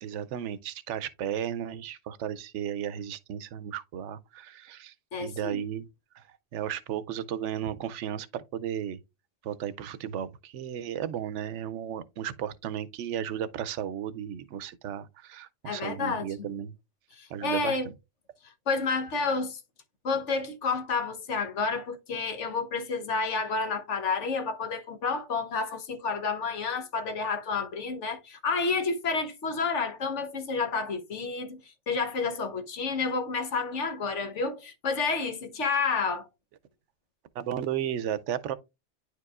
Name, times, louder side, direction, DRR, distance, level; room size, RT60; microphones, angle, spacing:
voice 1, 0.0-4.9 5.2-5.9 6.1-6.2 6.5-9.0 9.4-16.7 17.3-17.8 37.4-38.5, right 10 dB, 90° right, 0.9 m, -34 dB
voice 2, 5.1-5.6 15.6-16.5 17.2-17.9 18.7-19.6 20.0-31.6 31.9-36.3, left 4 dB, 90° left, 1.4 m, -30 dB
10.0 x 4.7 x 2.4 m
omnidirectional pair, 1.2 m